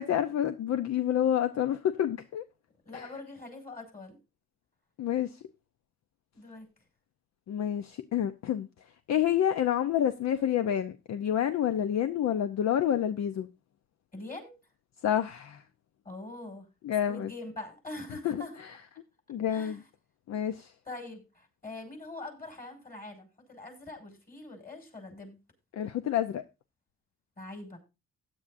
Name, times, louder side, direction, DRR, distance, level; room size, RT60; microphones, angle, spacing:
voice 1, 0.0-2.4 2.9-3.1 5.0-5.4 7.5-8.7 9.1-13.5 15.0-15.6 16.8-17.3 18.2-18.8 19.3-19.8 20.3-20.7 25.7-26.4, left 10 dB, 65° left, 0.7 m, -28 dB
voice 2, 2.9-4.2 6.3-6.7 14.1-14.5 16.0-16.7 17.1-18.5 19.5-19.8 20.9-25.4 27.4-27.8, left 2 dB, 30° left, 5.9 m, -43 dB
16.0 x 10.0 x 2.6 m
cardioid pair, 90°, 30 cm